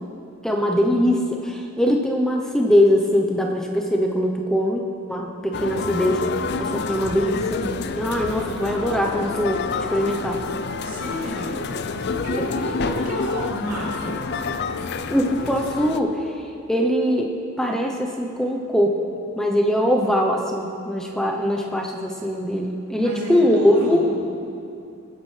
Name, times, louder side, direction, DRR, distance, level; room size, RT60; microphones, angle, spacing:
voice 1, 0.4-6.2 6.6-10.4 12.4-12.5 15.1-16.2 16.7-17.3 17.6-19.0 19.3-24.0, equal, ahead, 0 dB, 0.7 m, -22 dB
sound 1, 5.5-16.0, left 4 dB, 45° left, 0.4 m, -28 dB
voice 2, 10.8-11.7 12.0-14.3 23.0-24.2, right 1 dB, 75° right, -5 dB, 3.1 m, -31 dB
19.0 x 9.8 x 3.3 m, 2.6 s
head